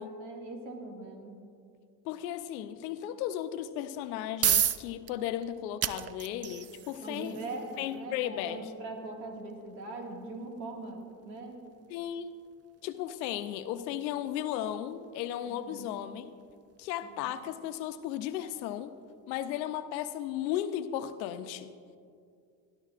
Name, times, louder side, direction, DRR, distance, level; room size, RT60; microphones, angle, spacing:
voice 1, 0.0-1.4 7.0-11.6 15.5-16.0 17.2-17.3, right 2 dB, 85° right, 1 dB, 2.1 m, -41 dB
voice 2, 2.0-7.4 7.8-8.7 11.9-12.3 12.8-16.3 16.8-19.0 19.3-21.7, left 11 dB, 90° left, 10 dB, 0.7 m, -35 dB
sound 1, 3.9-18.8, right 10 dB, 30° right, 0.5 m, -37 dB
21.5 x 13.0 x 2.5 m, 2.3 s
hypercardioid pair, 65°, 50 cm